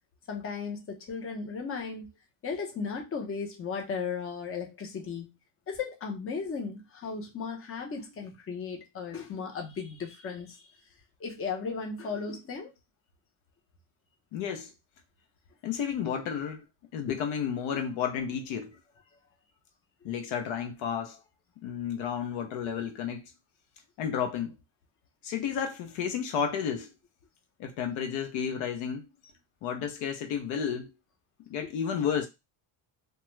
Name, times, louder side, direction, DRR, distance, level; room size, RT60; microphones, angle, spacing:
voice 1, 0.3-2.1 2.4-5.3 5.7-10.7 11.2-12.7 17.1-17.2 20.0-20.1, left 5 dB, 25° left, 0.7 m, -36 dB
voice 2, 14.3-14.7 15.6-16.6 16.9-18.8 20.0-21.2 21.6-23.3 24.0-24.5 25.2-26.9 27.6-29.1 29.6-30.9 31.5-32.3, left 7 dB, 70° left, 0.7 m, -32 dB
2.3 x 2.2 x 3.0 m
cardioid pair, 120°, 49 cm